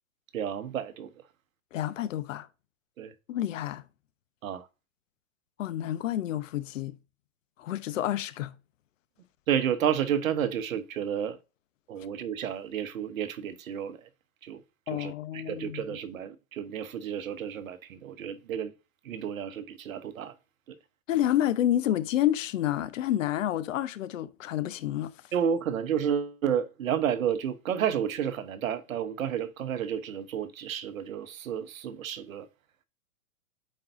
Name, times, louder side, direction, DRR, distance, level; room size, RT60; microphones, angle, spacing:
voice 1, 0.3-1.1 3.0-3.1 4.4-4.7 9.5-11.4 11.9-14.1 14.4-14.6 14.9-18.7 19.0-20.3 25.3-32.5, right 8 dB, 80° right, 1.1 m, -31 dB
voice 2, 1.7-2.5 3.3-3.8 5.6-7.0 7.6-8.5 14.9-16.0 21.1-25.1, left 12 dB, 65° left, 0.9 m, -29 dB
8.7 x 4.6 x 2.6 m
hypercardioid pair, 135°, 41 cm